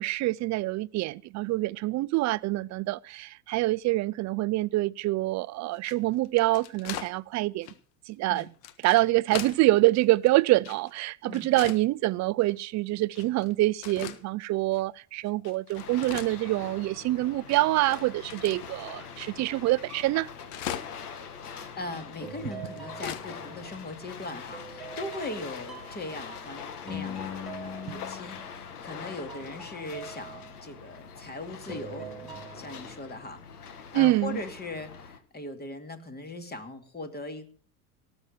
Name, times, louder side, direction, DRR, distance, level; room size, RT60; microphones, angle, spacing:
voice 1, 0.0-7.7 8.1-8.5 8.8-20.3 27.9-28.0 33.9-34.4, right 18 dB, 40° right, 0.6 m, -26 dB
sound 1, 5.7-7.1 7.6-7.8 8.3-9.6 10.0-11.0 11.3-11.8 12.4-12.5 13.1-13.5 13.8-14.2 14.7-14.8 15.3-16.9 17.1-17.2 17.5-18.8 19.2-19.3 19.6-19.7 19.9-21.1 21.5-21.6 22.3-23.3 23.6-23.7 23.9-24.0 24.7-24.9, left 10 dB, 65° left, 1.5 m, -40 dB
sound 2, 15.7-35.2, left 6 dB, 85° left, 1.9 m, -43 dB
voice 2, 21.4-37.5, left 2 dB, 20° left, 2.6 m, -40 dB
sound 3, 22.2-24.1 24.5-29.0 29.3-31.2 31.7-32.9, left 1 dB, ahead, 3.6 m, -43 dB
18.0 x 7.2 x 6.6 m
hypercardioid pair, 90°, 44 cm